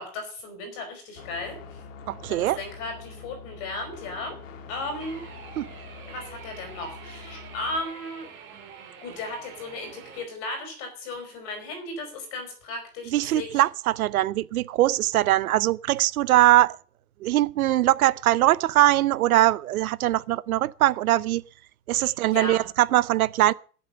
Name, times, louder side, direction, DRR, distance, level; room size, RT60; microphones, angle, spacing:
voice 1, 0.0-1.8 2.3-4.3 4.7-5.2 6.1-8.3 9.0-13.6 22.0-22.6, left 2 dB, 30° left, 4.8 m, -35 dB
sound 1, 1.2-7.8, left 4 dB, 55° left, 2.2 m, -44 dB
voice 2, 2.1-2.6 5.6-5.7 13.1-16.8 17.2-21.4 21.9-23.5, right 15 dB, 65° right, 0.7 m, -21 dB
sound 2, 5.0-10.2, right 7 dB, 25° right, 3.7 m, -46 dB
15.5 x 7.2 x 6.7 m
supercardioid pair, 175°, 46 cm